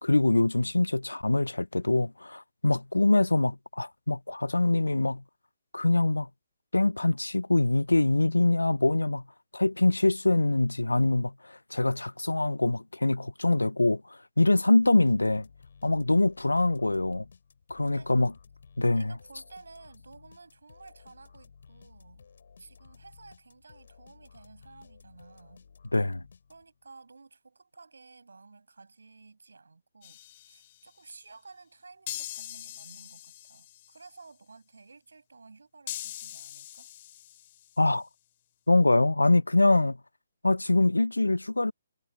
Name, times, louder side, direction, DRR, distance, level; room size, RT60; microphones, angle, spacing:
voice 1, 0.0-5.2 5.7-6.3 6.7-9.2 9.5-14.0 14.4-15.5 15.8-17.2 17.7-18.3 18.8-19.1 25.9-26.2 37.8-38.1 38.7-40.0 40.4-41.7, left 2 dB, 85° left, 0.4 m, -24 dB
sound 1, 14.7-26.9, left 6 dB, 60° left, 6.8 m, -55 dB
voice 2, 17.8-18.1 18.9-22.3 22.6-25.7 26.5-30.2 30.4-36.9, right 4 dB, 75° right, 6.5 m, -53 dB
sound 2, 30.0-30.9 32.1-34.0 35.9-37.8, left 13 dB, 40° left, 4.6 m, -42 dB
figure-of-eight pair, 135°, 0 cm